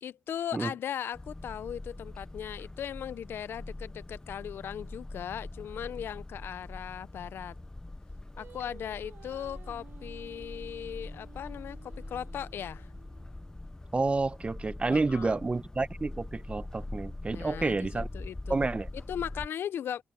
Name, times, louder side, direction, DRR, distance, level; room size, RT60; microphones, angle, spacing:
voice 1, 0.0-7.6 8.4-12.9 14.9-15.4 17.3-18.6 18.9-20.0, left 9 dB, 75° left, 0.6 m, -38 dB
sound 1, 1.1-19.5, left 2 dB, 15° left, 0.6 m, -43 dB
Singing, 8.4-13.6, right 8 dB, 75° right, 2.4 m, -55 dB
voice 2, 13.9-18.1 18.5-18.9, right 3 dB, 30° right, 1.0 m, -29 dB
open air
cardioid pair, 60°, 4 cm